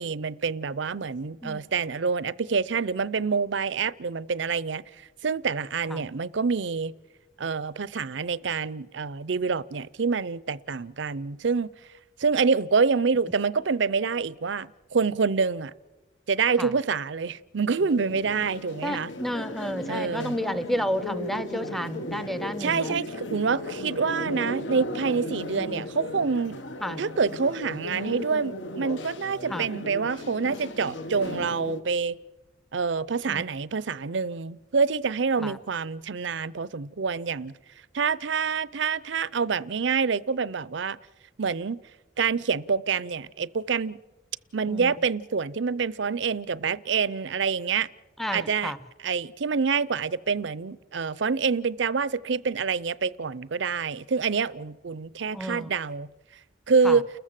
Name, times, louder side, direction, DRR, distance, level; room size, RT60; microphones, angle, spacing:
voice 1, 0.0-4.8 5.2-6.9 7.4-11.7 12.2-15.7 16.3-19.1 19.9-20.4 22.6-26.6 27.0-32.1 32.7-37.5 37.9-41.0 41.4-41.8 42.2-44.0 44.5-47.9 48.3-48.7 49.0-56.1 56.7-57.0, right 5 dB, 65° right, 0.6 m, -27 dB
sound 1, 17.8-31.8, left 2 dB, 70° left, 1.4 m, -36 dB
voice 2, 18.8-23.0 25.6-25.9 26.8-27.0 29.5-29.7 33.3-33.4 35.4-35.6 44.7-44.9 48.2-48.8 55.3-55.7 56.8-57.0, equal, ahead, 0.7 m, -31 dB
30.0 x 14.0 x 7.5 m
head